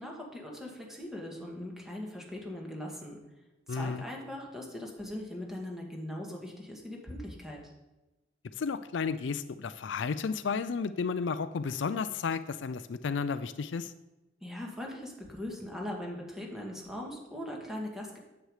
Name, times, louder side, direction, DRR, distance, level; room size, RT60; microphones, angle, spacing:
voice 1, 0.0-3.2 3.7-7.7 14.4-18.2, left 1 dB, ahead, -1 dB, 1.9 m, -40 dB
voice 2, 3.7-4.0 8.6-13.9, left 5 dB, 75° left, 13 dB, 0.4 m, -32 dB
9.3 x 8.0 x 4.9 m, 1.0 s
head